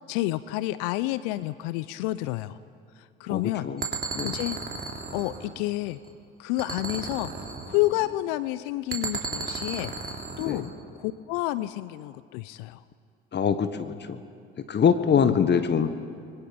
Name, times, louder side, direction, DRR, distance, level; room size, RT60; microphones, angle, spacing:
voice 1, 0.1-2.6 3.0-3.7 4.2-4.6 5.1-6.0 6.4-9.9 10.4-10.6 10.9-12.8 15.2-15.4, left 17 dB, 65° left, 15 dB, 0.7 m, -29 dB
voice 2, 3.3-3.8 4.1-4.4 10.4-10.7 13.3-14.2 14.6-15.9, left 7 dB, 35° left, 10 dB, 1.5 m, -24 dB
sound 1, 3.8-6.1 6.6-8.2 8.9-10.8, right 4 dB, 30° right, 3.4 m, -35 dB
29.5 x 22.5 x 5.3 m, 2.2 s
hypercardioid pair, 60°, 29 cm